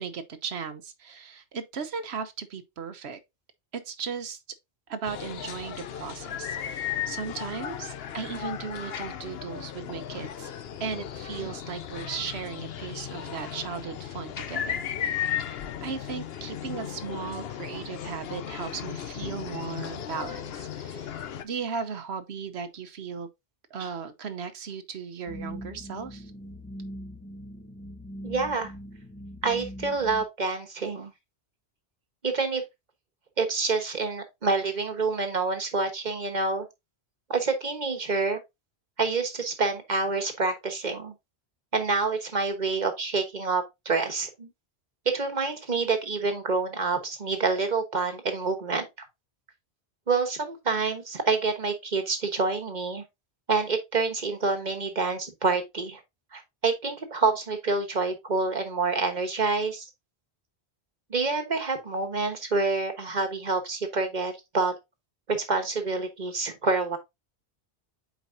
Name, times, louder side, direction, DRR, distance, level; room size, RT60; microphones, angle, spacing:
voice 1, 0.0-3.2 3.7-4.4 4.9-10.5 10.8-23.3 23.7-26.3, right 6 dB, 75° right, 1.1 m, -37 dB
sound 1, 5.0-21.4, left 9 dB, 70° left, 0.9 m, -35 dB
sound 2, 25.3-30.3, equal, 10° left, 0.9 m, -41 dB
voice 2, 28.2-28.7 29.4-31.1 32.2-32.6 33.4-36.7 37.3-38.4 39.0-41.1 41.7-44.5 45.0-48.8 50.1-53.0 53.5-56.0 56.3-59.9 61.1-64.7 65.3-67.0, right 4 dB, 45° right, 1.3 m, -27 dB
8.2 x 4.7 x 2.6 m
omnidirectional pair, 1.1 m